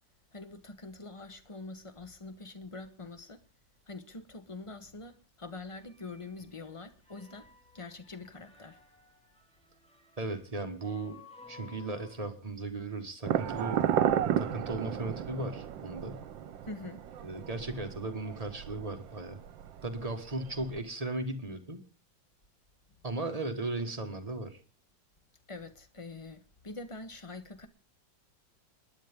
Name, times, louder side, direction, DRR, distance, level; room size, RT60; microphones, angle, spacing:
voice 1, 0.3-3.4 3.9-7.5 7.7-8.8 16.6-17.0 25.5-27.7, left 3 dB, 25° left, 0.7 m, -45 dB
sound 1, 5.8-12.3, left 4 dB, 5° left, 2.0 m, -57 dB
voice 2, 10.2-11.2 11.5-13.8 14.4-16.2 17.2-19.4 19.8-21.8 23.0-24.6, right 2 dB, 20° right, 1.3 m, -36 dB
sound 2, 13.2-20.8, right 9 dB, 75° right, 1.6 m, -33 dB
28.5 x 10.5 x 3.6 m
omnidirectional pair, 2.1 m